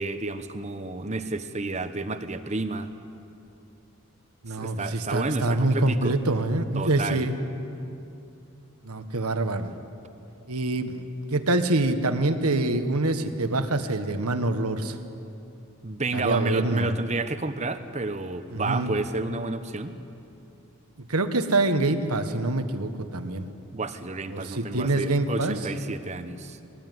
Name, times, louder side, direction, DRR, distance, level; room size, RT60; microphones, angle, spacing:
voice 1, 0.0-2.9 4.6-6.2 6.7-7.3 15.8-20.0 23.7-26.6, right 3 dB, 30° right, 9 dB, 1.0 m, -30 dB
voice 2, 4.4-7.3 8.8-9.7 10.5-11.0 11.3-15.0 16.1-16.9 18.5-18.9 21.1-23.4 24.3-25.6 26.6-26.7, right 2 dB, 85° right, 8 dB, 1.5 m, -25 dB
22.5 x 19.0 x 9.5 m, 2.7 s
head